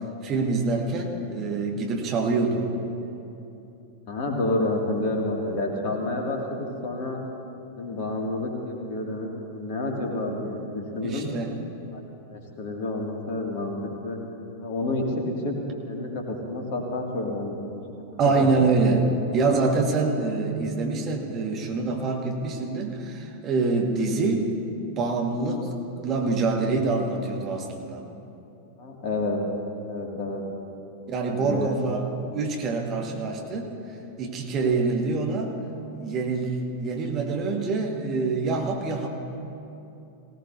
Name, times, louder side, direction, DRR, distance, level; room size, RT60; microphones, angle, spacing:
voice 1, 0.0-2.7 11.0-11.6 18.2-19.0 19.3-24.5 24.8-28.1 31.1-33.7 34.2-35.6 35.9-39.1, right 3 dB, 30° right, 1 dB, 1.7 m, -25 dB
voice 2, 4.1-7.2 7.7-11.3 11.9-12.0 12.3-14.2 14.6-15.5 15.9-17.8 18.2-18.5 28.8-29.4 29.8-30.4 31.3-31.7, left 2 dB, 45° left, 0 dB, 2.2 m, -29 dB
18.5 x 17.5 x 2.7 m, 2.9 s
figure-of-eight pair, 90°, 0 cm